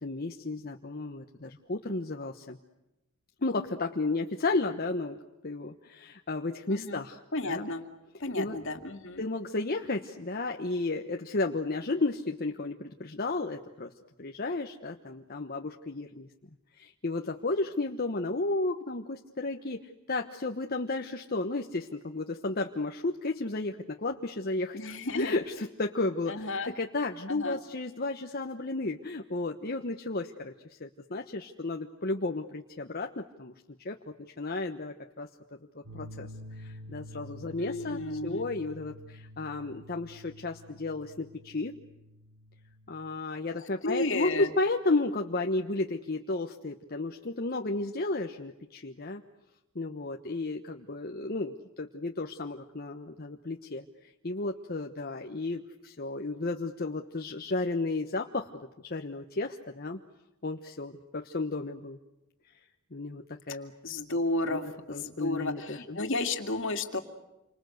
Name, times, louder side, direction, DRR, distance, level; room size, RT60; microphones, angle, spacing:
voice 1, 0.0-2.6 3.4-7.7 8.3-8.6 9.2-13.9 14.2-16.3 16.8-33.5 33.8-35.3 35.7-36.3 36.6-41.8 42.9-49.2 49.7-60.0 60.4-62.0 62.9-63.7 64.5-66.0, left 2 dB, 45° left, 3 dB, 1.2 m, -33 dB
voice 2, 6.7-7.0 7.3-7.8 8.2-9.2 24.7-25.3 26.3-26.7 27.3-27.6 37.6-38.5 43.5-44.5 63.8-67.0, left 2 dB, 60° left, 6 dB, 2.5 m, -33 dB
sound 1, 35.8-43.1, left 1 dB, 55° right, 3.4 m, -48 dB
29.0 x 25.5 x 8.0 m, 0.94 s
head